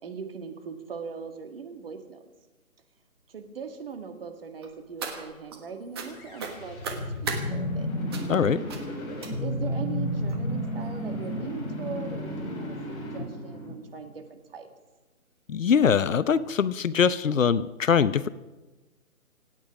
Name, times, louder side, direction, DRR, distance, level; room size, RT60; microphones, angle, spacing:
voice 1, 0.0-2.3 3.3-7.9 9.4-14.7, right 5 dB, 40° right, 6 dB, 1.9 m, -40 dB
sound 1, 4.6-5.6 5.9-6.1 6.4-7.4 8.1-8.4 8.7-8.9 9.2-9.6 10.3-10.4 10.8-11.0 11.2-11.3, right 5 dB, 20° right, 1.3 m, -36 dB
sound 2, 6.1-14.2, equal, 25° left, 3.7 m, -32 dB
voice 2, 15.5-18.3, left 7 dB, 65° left, 15 dB, 0.8 m, -22 dB
26.0 x 9.0 x 5.2 m, 1.2 s
hypercardioid pair, 160°, 43 cm